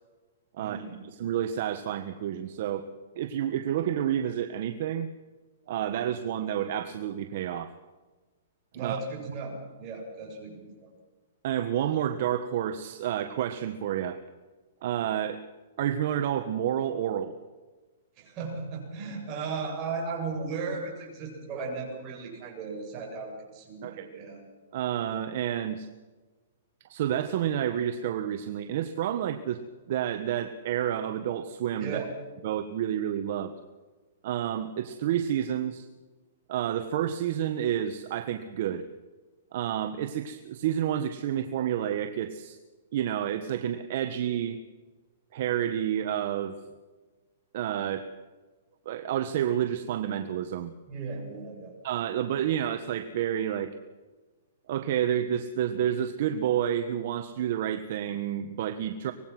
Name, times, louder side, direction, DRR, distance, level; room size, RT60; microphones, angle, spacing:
voice 1, 0.6-1.0 8.7-10.9 18.2-24.4 31.8-32.1 50.9-51.7, right 4 dB, 30° right, 0 dB, 8.0 m, -36 dB
voice 2, 1.2-2.8 3.1-5.1 5.7-7.7 8.7-9.0 11.4-14.2 14.8-15.4 15.8-17.3 23.8-24.1 24.7-25.9 26.9-29.6 29.9-32.0 32.4-33.5 34.2-35.8 36.5-38.8 39.5-42.6 42.9-44.6 45.3-46.6 47.5-48.1 48.8-50.7 51.8-53.7 54.7-59.1, right 10 dB, 50° right, 8 dB, 1.5 m, -29 dB
24.5 x 20.5 x 6.2 m, 1.3 s
hypercardioid pair, 160°, 0 cm